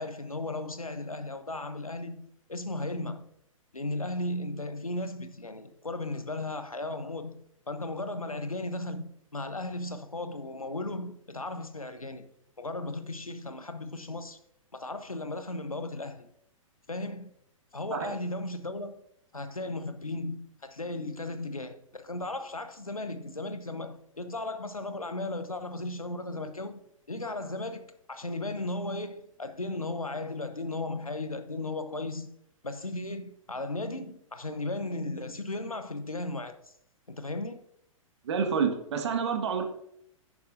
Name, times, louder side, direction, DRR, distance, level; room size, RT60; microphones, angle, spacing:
voice 1, 0.0-3.2 3.7-7.4 7.7-12.3 12.6-14.4 14.7-16.3 16.9-17.3 17.7-19.0 19.3-26.8 27.1-32.3 32.6-36.7 37.1-37.6, left 2 dB, 85° left, 1.0 m, -36 dB
voice 2, 38.2-39.6, right 6 dB, 55° right, 1.7 m, -28 dB
11.0 x 9.3 x 2.7 m
figure-of-eight pair, 110°, 18 cm